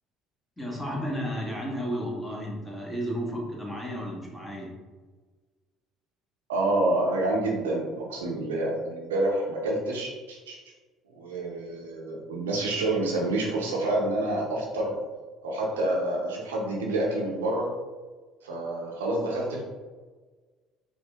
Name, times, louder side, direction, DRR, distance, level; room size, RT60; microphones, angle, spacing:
voice 1, 0.6-4.7, equal, 10° left, -3 dB, 1.5 m, -33 dB
voice 2, 6.5-10.6 11.1-14.9 15.4-17.7 18.4-19.6, right 2 dB, 85° right, -2 dB, 0.7 m, -28 dB
4.7 x 2.6 x 3.5 m, 1.3 s
hypercardioid pair, 60°, 0 cm